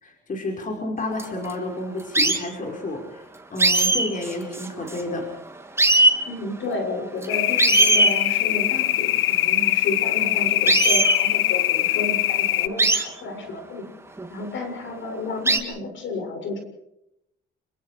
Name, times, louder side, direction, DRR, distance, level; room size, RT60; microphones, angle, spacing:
voice 1, 0.0-3.3 3.5-5.3, left 2 dB, 40° left, 2 dB, 5.1 m, -30 dB
sound 1, 1.2-1.5 2.1-2.4 3.6-5.2 5.5-5.6 5.8-6.2 7.2-7.3 7.6-8.2 10.7-11.2 12.8-13.0 14.2-14.3 15.5-15.6, right 2 dB, 15° right, 3.1 m, -19 dB
voice 2, 6.2-13.9 14.3-16.6, left 2 dB, 70° left, 4 dB, 7.1 m, -31 dB
sound 2, 7.3-12.7, left 14 dB, 85° left, 0.8 m, -22 dB
26.5 x 24.5 x 5.0 m, 0.82 s
cardioid pair, 90°, 20 cm